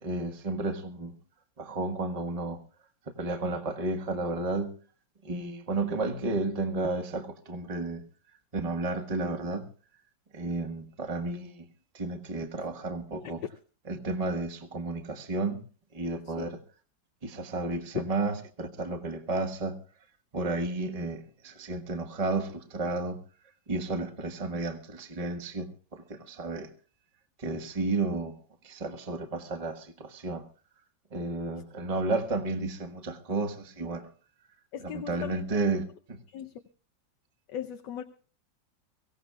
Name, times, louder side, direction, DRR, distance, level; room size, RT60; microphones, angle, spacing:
voice 1, 0.0-1.1 1.6-2.6 3.2-4.7 5.2-8.0 8.5-9.7 10.3-11.7 11.9-13.4 13.9-15.6 15.9-16.6 17.2-19.8 20.3-23.2 23.7-26.7 27.4-28.3 28.6-30.4 31.1-34.1 34.8-36.2, right 3 dB, 20° right, 1.3 m, -32 dB
voice 2, 34.7-35.5 36.3-36.6 37.5-38.0, left 9 dB, 75° left, 1.4 m, -37 dB
24.0 x 16.0 x 2.3 m
omnidirectional pair, 2.0 m